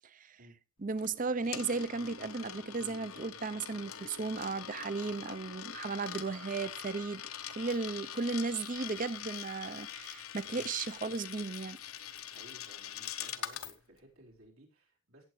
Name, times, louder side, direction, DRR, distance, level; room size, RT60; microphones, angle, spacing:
voice 1, 0.8-7.2 7.6-11.8, right 4 dB, 40° right, 0.6 m, -35 dB
Coin (dropping), 1.0-13.8, left 9 dB, 90° left, 1.0 m, -44 dB
voice 2, 12.2-15.3, right 1 dB, 80° right, 4.3 m, -58 dB
17.0 x 7.8 x 3.1 m
head